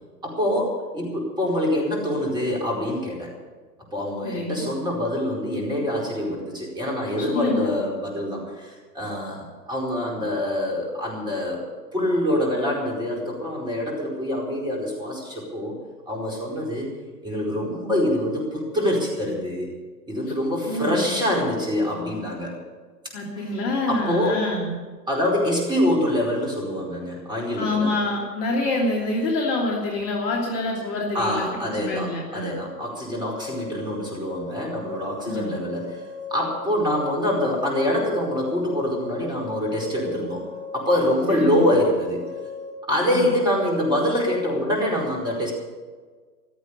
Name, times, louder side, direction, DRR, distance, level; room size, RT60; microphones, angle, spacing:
voice 1, 0.2-3.3 3.9-11.6 11.9-15.8 16.1-16.9 17.2-19.7 20.1-22.5 23.4-23.5 23.9-24.5 25.1-27.9 31.1-36.0 36.3-40.5 40.7-42.2 42.8-45.5, left 1 dB, 10° right, -1 dB, 4.6 m, -25 dB
voice 2, 4.2-4.6 7.3-7.7 20.7-21.1 23.1-24.8 27.6-32.6 35.3-35.5 41.3-41.7 43.0-43.3, left 2 dB, 30° left, -2 dB, 3.0 m, -26 dB
sound 1, 33.1-42.7, left 3 dB, 10° left, 3.5 m, -38 dB
15.5 x 13.0 x 6.8 m, 1.5 s
figure-of-eight pair, 120°, 50 cm